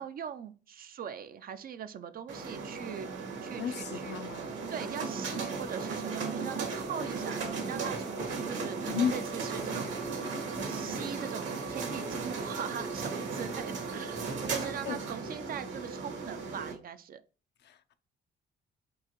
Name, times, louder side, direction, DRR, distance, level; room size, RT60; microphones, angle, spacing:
voice 1, 0.0-4.2 4.5-10.0 10.6-17.2, right 8 dB, 50° right, 0.4 m, -41 dB
sound 1, 2.3-16.7, right 4 dB, 70° right, 1.4 m, -36 dB
voice 2, 3.6-4.5 8.9-9.1 14.9-15.0 17.6-17.9, left 8 dB, 60° left, 0.5 m, -33 dB
4.6 x 2.5 x 2.9 m
cardioid pair, 90°, 20 cm